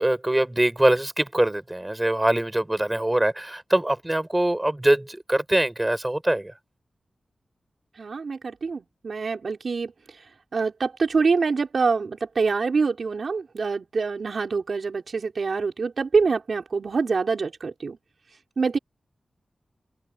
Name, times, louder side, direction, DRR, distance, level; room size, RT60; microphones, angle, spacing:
voice 1, 0.0-6.5, right 1 dB, 15° right, 6.9 m, -23 dB
voice 2, 8.0-9.9 10.5-18.0 18.6-18.8, right 4 dB, 70° right, 5.3 m, -25 dB
wide cardioid pair, 70°, 0 cm